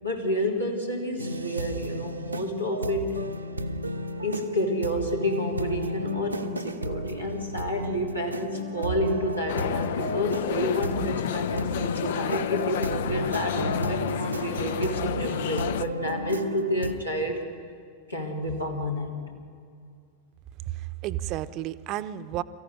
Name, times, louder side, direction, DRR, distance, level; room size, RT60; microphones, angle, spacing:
voice 1, 0.0-3.2 4.2-17.4 18.1-19.2, equal, 90° left, -1 dB, 3.4 m, -30 dB
sound 1, 1.2-16.9, right 1 dB, 85° right, 1.1 m, -33 dB
sound 2, 9.5-15.8, left 11 dB, 55° left, 0.5 m, -30 dB
voice 2, 20.7-22.4, right 13 dB, 40° right, 12 dB, 0.8 m, -32 dB
23.5 x 15.0 x 9.9 m, 2.3 s
figure-of-eight pair, 90°, 0 cm